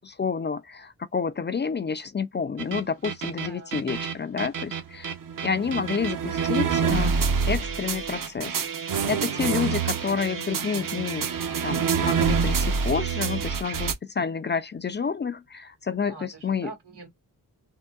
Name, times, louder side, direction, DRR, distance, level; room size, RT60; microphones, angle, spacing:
voice 1, 0.0-5.1 5.4-8.5 9.1-11.3 11.6-16.7, left 6 dB, 30° left, 0.4 m, -29 dB
sound 1, 2.6-13.9, right 6 dB, 55° right, 0.8 m, -27 dB
voice 2, 3.4-4.0 9.3-10.0 16.1-17.1, right 3 dB, 90° right, 2.2 m, -45 dB
3.7 x 2.2 x 2.3 m
cardioid pair, 65°, 39 cm